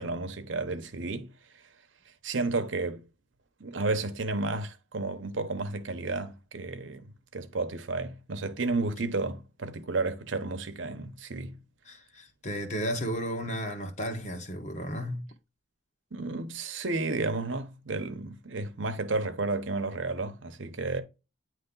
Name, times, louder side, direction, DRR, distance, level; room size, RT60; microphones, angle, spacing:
voice 1, 0.0-1.3 2.2-3.0 3.6-11.6 16.1-21.0, right 3 dB, 75° right, 0.9 m, -32 dB
voice 2, 11.9-15.3, equal, 35° left, 1.3 m, -34 dB
9.3 x 3.2 x 3.8 m
head